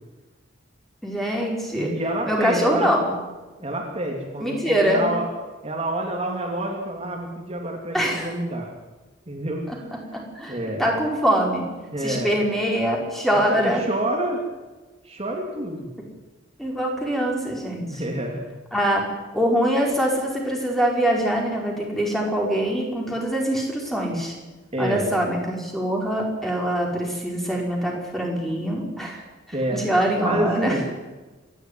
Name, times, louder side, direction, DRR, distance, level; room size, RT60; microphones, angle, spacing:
voice 1, 1.0-1.9 2.2-3.1 4.4-5.1 7.9-8.3 9.7-9.8 10.1-10.5 10.8-11.7 12.0-13.8 16.6-18.0 18.7-19.1 19.3-24.3 24.8-29.2 29.7-30.8, equal, ahead, -1 dB, 4.9 m, -23 dB
voice 2, 1.8-3.0 3.6-5.3 5.6-8.7 9.3-9.9 10.5-10.8 11.9-12.3 13.5-14.4 15.0-15.9 17.9-18.4 24.7-25.1 29.5-29.9 30.2-30.8, right 1 dB, 30° right, 0 dB, 3.2 m, -28 dB
28.0 x 12.0 x 9.6 m, 1.2 s
head